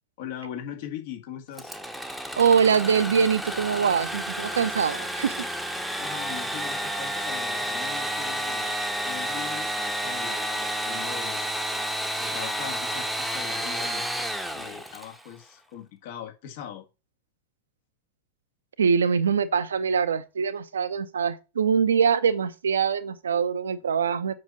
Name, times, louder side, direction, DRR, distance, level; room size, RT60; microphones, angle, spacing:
voice 1, 0.2-1.7 5.9-8.8 9.1-11.4 12.2-14.1 14.5-16.8, left 9 dB, 50° left, 2.0 m, -40 dB
Engine / Sawing, 1.5-15.3, equal, ahead, 1.1 m, -31 dB
voice 2, 2.4-5.4 18.8-24.4, right 6 dB, 70° right, 0.7 m, -23 dB
7.7 x 6.0 x 3.9 m
figure-of-eight pair, 90°, 0 cm